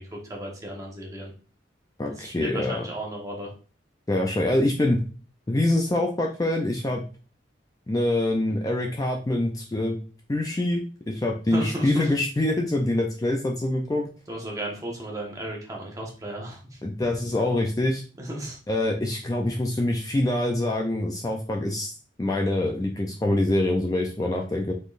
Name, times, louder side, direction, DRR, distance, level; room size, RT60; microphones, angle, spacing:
voice 1, 0.0-1.3 2.2-3.5 11.5-12.1 14.3-16.8 18.2-18.6, right 1 dB, 20° right, -1 dB, 1.1 m, -34 dB
voice 2, 2.0-2.9 4.1-5.0 5.5-7.0 7.9-10.0 10.3-14.1 16.8-18.0 18.7-21.9 22.2-24.7, left 1 dB, 20° left, 1 dB, 0.4 m, -25 dB
5.2 x 4.0 x 2.4 m, 0.39 s
head